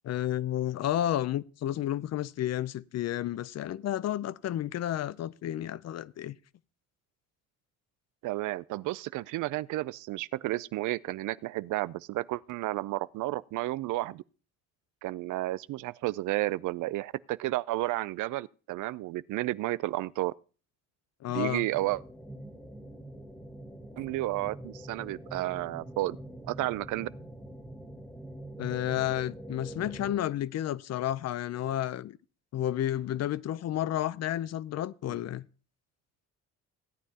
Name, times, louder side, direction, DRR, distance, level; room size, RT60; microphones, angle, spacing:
voice 1, 0.0-6.4 21.2-21.7 28.6-32.2 32.5-35.5, left 12 dB, 60° left, 0.5 m, -31 dB
voice 2, 8.2-14.2 15.0-20.3 21.3-22.0 24.0-26.2 26.5-27.1 35.1-35.2, right 17 dB, 80° right, 0.5 m, -32 dB
sound 1, 21.7-30.2, right 1 dB, 10° left, 1.9 m, -44 dB
16.5 x 9.3 x 2.8 m
cardioid pair, 90°, 30 cm